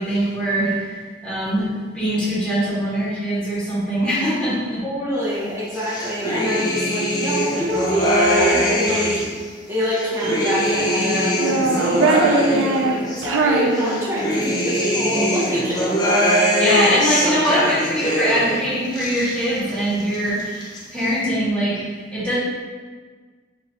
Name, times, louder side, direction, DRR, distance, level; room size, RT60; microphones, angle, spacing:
voice 1, 0.0-4.8 16.6-22.3, equal, 5° left, -11 dB, 1.4 m, -22 dB
voice 2, 4.8-9.2 9.7-16.3, left 1 dB, 15° right, -8 dB, 1.0 m, -26 dB
sound 1, 5.7-9.4 9.8-13.3 13.7-18.6 18.8-19.7 20.0-20.8, equal, 20° left, 0.6 m, -22 dB
Child speech kid speaking, 7.6-9.2 10.0-10.9 11.3-14.5, right 3 dB, 90° right, 0.3 m, -23 dB
3.8 x 2.5 x 3.1 m, 1.5 s
head